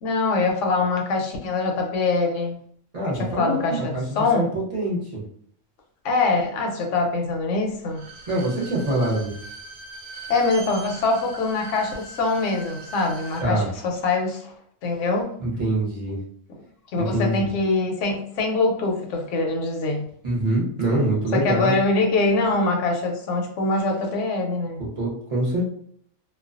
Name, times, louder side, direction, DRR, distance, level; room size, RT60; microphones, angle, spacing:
voice 1, 0.0-2.6 3.1-4.5 6.0-8.0 10.3-14.5 14.8-15.3 16.9-20.0 21.3-24.8, left 3 dB, 65° left, 2 dB, 0.8 m, -23 dB
voice 2, 2.9-5.2 8.3-9.3 13.4-13.7 15.4-16.2 17.0-17.5 20.2-21.8 25.0-25.6, right 1 dB, 40° right, -5 dB, 0.6 m, -24 dB
Bowed string instrument, 7.8-13.5 13.8-13.9, right 3 dB, 75° right, 0.9 m, -41 dB
2.4 x 2.1 x 2.4 m, 0.62 s
omnidirectional pair, 1.6 m